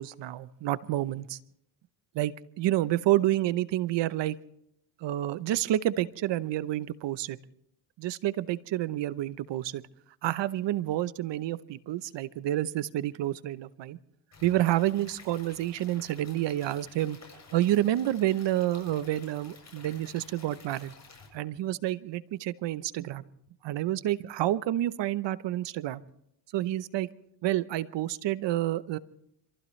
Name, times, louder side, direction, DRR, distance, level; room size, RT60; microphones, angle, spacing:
voice 1, 0.0-1.4 2.1-4.4 5.0-7.4 8.0-9.8 10.2-14.0 14.4-17.2 17.5-20.9 21.3-23.2 23.6-26.0 26.5-27.1 27.4-29.0, right 14 dB, 70° right, 15 dB, 0.9 m, -29 dB
Stream / Liquid, 14.3-21.3, left 4 dB, 35° left, 7.9 m, -52 dB
27.0 x 15.5 x 3.2 m, 0.74 s
cardioid pair, 85°, 44 cm